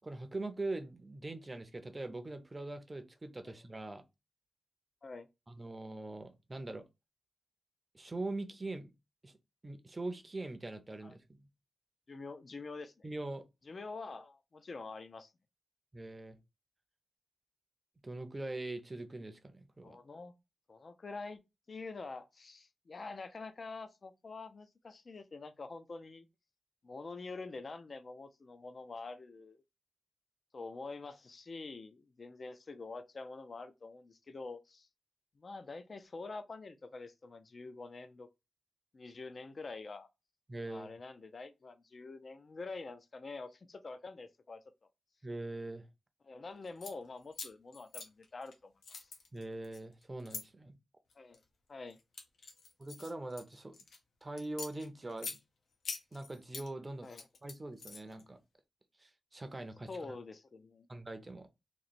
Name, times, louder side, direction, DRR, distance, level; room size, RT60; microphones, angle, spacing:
voice 1, 0.0-4.0 5.5-6.8 7.9-8.9 9.2-9.3 9.6-11.5 13.0-13.4 15.9-16.4 18.0-20.0 40.5-40.9 45.2-45.8 49.3-50.7 52.8-53.7 54.2-55.4 56.1-57.1 57.4-58.4 59.0-59.9 60.9-61.5, right 2 dB, 20° right, 0.5 m, -42 dB
voice 2, 12.1-13.1 13.6-15.3 19.8-20.3 20.7-21.4 21.7-26.3 26.8-29.6 30.5-34.9 35.4-38.3 38.9-40.1 40.7-44.6 46.2-48.7 49.0-49.1 51.2-51.4 51.7-52.0 57.0-57.3 59.9-60.9, left 3 dB, 40° left, 0.4 m, -46 dB
sound 1, 46.6-46.9 47.3-48.5 48.8-50.4 51.1-51.4 51.9-54.0 54.4-55.4 55.8-56.7 57.0-58.2, left 4 dB, 80° left, 0.9 m, -45 dB
3.0 x 2.9 x 4.1 m
wide cardioid pair, 165°, 0 cm